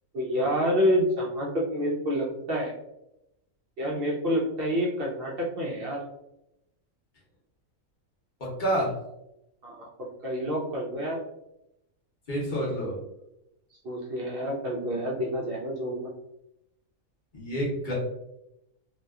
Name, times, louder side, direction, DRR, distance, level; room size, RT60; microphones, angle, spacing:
voice 1, 0.1-2.7 3.8-6.0 9.6-9.9 10.2-11.2 13.8-16.0, equal, 65° right, -3 dB, 0.6 m, -28 dB
voice 2, 8.4-8.9 12.3-12.9 17.3-17.9, right 1 dB, 45° left, -5 dB, 0.8 m, -28 dB
2.8 x 2.2 x 2.3 m, 0.87 s
omnidirectional pair, 1.4 m